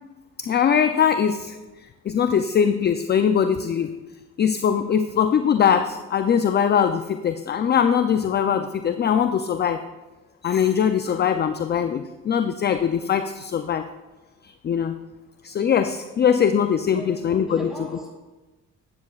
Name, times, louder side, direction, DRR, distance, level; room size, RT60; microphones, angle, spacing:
voice 1, 0.4-4.0 4.4-9.8 10.4-13.9 14.4-15.0 15.4-17.7, left 8 dB, 35° left, 0.4 m, -21 dB
voice 2, 16.8-18.1, left 1 dB, ahead, 3.3 m, -37 dB
12.5 x 9.6 x 2.4 m
cardioid pair, 90°, 30 cm